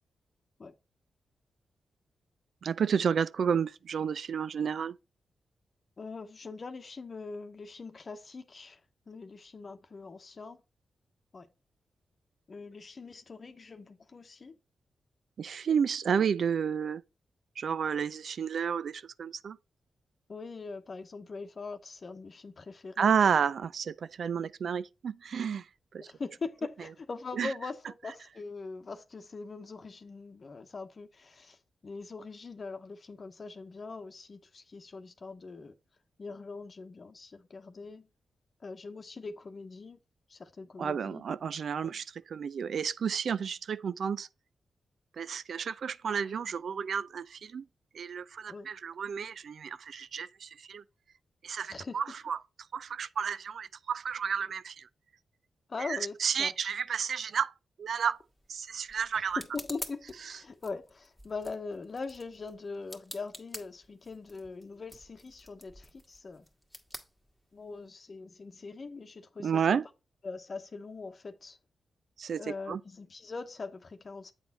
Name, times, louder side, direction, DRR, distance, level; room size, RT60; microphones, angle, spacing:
voice 1, 2.6-4.9 15.4-17.0 17.6-19.6 23.0-25.6 25.9-26.1 27.3-27.5 40.8-44.3 45.2-47.6 47.9-50.8 51.4-52.4 52.7-54.9 55.8-57.5 57.8-58.2 58.5-59.4 69.4-69.9 72.2-72.8, right 7 dB, 70° right, 0.3 m, -31 dB
voice 2, 6.0-8.8 9.1-10.6 11.3-11.5 12.5-14.5 16.1-16.3 20.3-23.1 26.0-35.7 36.2-38.1 38.6-40.0 40.3-41.2 41.8-42.0 48.5-48.7 51.7-52.0 55.7-56.5 59.1-66.4 67.5-69.8 70.2-71.6 72.4-74.3, left 4 dB, 50° left, 0.9 m, -42 dB
sound 1, 58.0-67.9, equal, ahead, 1.5 m, -49 dB
8.1 x 4.1 x 4.1 m
cardioid pair, 55°, 0 cm